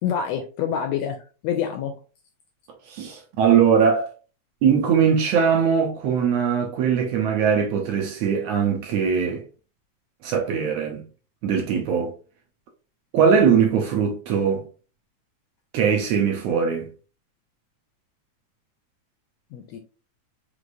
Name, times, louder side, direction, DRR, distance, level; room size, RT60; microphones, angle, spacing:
voice 1, 0.0-2.0 19.5-19.8, left 8 dB, 80° left, 1.5 m, -27 dB
voice 2, 2.9-4.1 4.6-9.4 10.2-11.0 11.4-12.1 13.1-14.6 15.7-16.9, right 7 dB, 75° right, 1.6 m, -21 dB
5.0 x 3.2 x 2.5 m
omnidirectional pair, 3.4 m